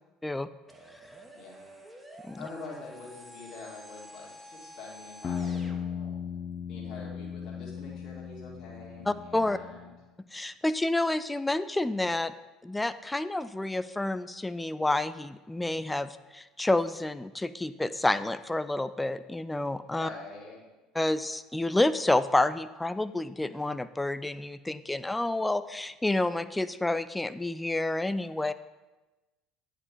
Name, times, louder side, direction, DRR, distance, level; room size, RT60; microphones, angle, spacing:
sound 1, 0.7-5.8, equal, 5° right, 1.4 m, -49 dB
voice 1, 1.3-1.7 2.4-6.1 6.7-9.9 20.0-20.6, left 3 dB, 50° left, -3 dB, 2.3 m, -45 dB
sound 2, 5.2-9.9, left 7 dB, 35° left, 0.9 m, -37 dB
voice 2, 9.1-9.6 10.3-12.3 12.6-20.1 20.9-28.5, left 2 dB, 10° left, 14 dB, 0.3 m, -29 dB
9.7 x 5.0 x 5.0 m, 1.1 s
figure-of-eight pair, 60°, 0 cm